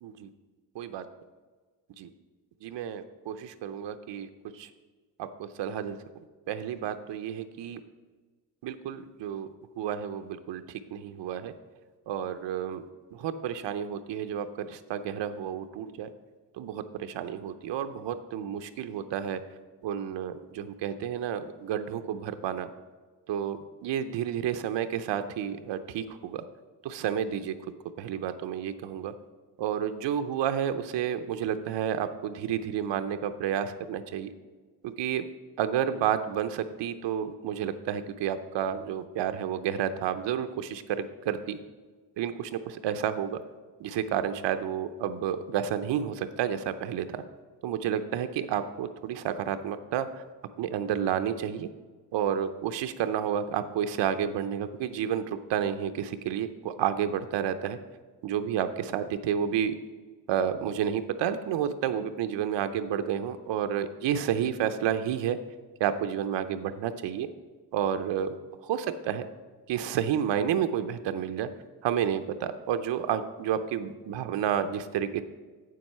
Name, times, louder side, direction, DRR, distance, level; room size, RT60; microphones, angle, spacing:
voice 1, 2.6-4.3 4.5-4.7 5.2-6.0 6.5-7.8 8.6-9.5 9.8-11.5 12.1-12.8 13.1-16.1 16.6-19.4 19.8-22.7 23.3-26.4 26.8-27.5 28.0-29.1 29.6-34.3 34.8-35.2 35.6-41.6 42.2-43.4 43.8-47.2 47.6-50.2 50.6-51.7 52.1-57.8 58.2-59.8 60.3-65.4 65.8-67.3 67.7-68.3 68.6-69.2 69.7-71.5 71.8-75.2, right 9 dB, 80° right, 9 dB, 0.6 m, -30 dB
8.3 x 7.6 x 5.5 m, 1.4 s
cardioid pair, 155°, 42 cm